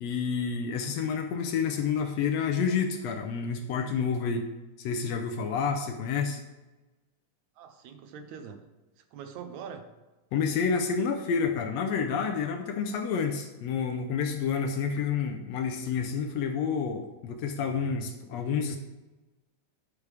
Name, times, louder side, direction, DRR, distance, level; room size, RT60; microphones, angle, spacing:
voice 1, 0.0-4.4 4.8-6.4 10.3-18.8, left 6 dB, 75° left, 4 dB, 1.7 m, -29 dB
voice 2, 7.6-8.6 9.0-9.9, right 7 dB, 80° right, 7 dB, 2.1 m, -43 dB
9.9 x 8.3 x 3.4 m, 1.1 s
omnidirectional pair, 3.4 m